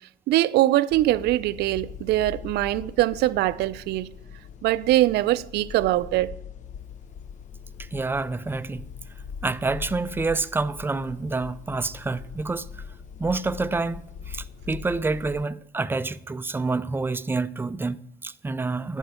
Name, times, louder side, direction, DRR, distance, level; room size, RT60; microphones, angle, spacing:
voice 1, 0.3-4.1 4.6-6.4, right 15 dB, 75° right, 0.5 m, -22 dB
sound 1, 0.9-15.5, left 7 dB, 45° left, 0.5 m, -41 dB
voice 2, 7.8-8.8 9.4-12.7 13.2-19.0, right 3 dB, 15° right, 0.4 m, -28 dB
11.5 x 4.5 x 8.0 m
cardioid pair, 110°, 17 cm